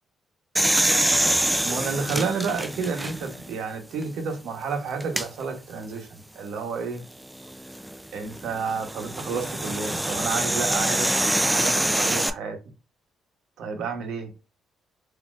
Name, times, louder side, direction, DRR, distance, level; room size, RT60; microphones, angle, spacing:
sound 1, 0.5-3.5 4.0-4.1 5.0-5.3 7.4-12.3, right 1 dB, 10° right, 0.3 m, -25 dB
voice 1, 1.6-7.0 8.1-12.6 13.6-14.3, right 5 dB, 80° right, 0.9 m, -30 dB
4.0 x 2.7 x 2.4 m
cardioid pair, 90°, 0 cm